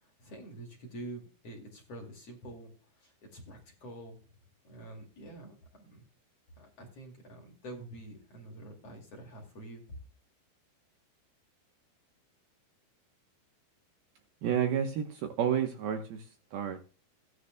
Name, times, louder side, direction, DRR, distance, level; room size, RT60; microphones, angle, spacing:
voice 1, 0.0-4.2 4.6-6.0 6.6-10.0, right 1 dB, 40° left, 0 dB, 2.8 m, -47 dB
voice 2, 14.4-16.2 16.5-16.8, right 8 dB, 70° right, 5 dB, 2.6 m, -30 dB
17.0 x 10.5 x 2.2 m, 0.37 s
omnidirectional pair, 5.2 m